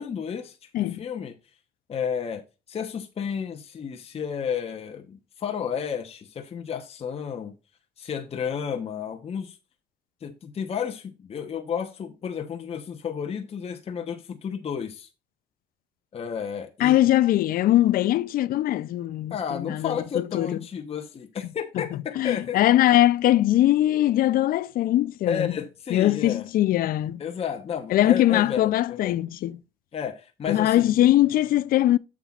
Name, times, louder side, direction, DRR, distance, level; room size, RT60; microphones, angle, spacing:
voice 1, 0.0-1.4 1.9-2.4 2.7-7.5 8.0-9.6 10.2-15.1 16.1-17.0 19.3-22.6 25.3-26.4 27.2-29.2 29.9-30.9, left 7 dB, 35° left, 1.0 m, -32 dB
voice 2, 16.8-20.6 22.2-25.5 25.9-27.2 27.9-29.6 30.5-32.0, left 14 dB, 60° left, 0.5 m, -21 dB
9.8 x 7.3 x 2.4 m
cardioid pair, 110°, 17 cm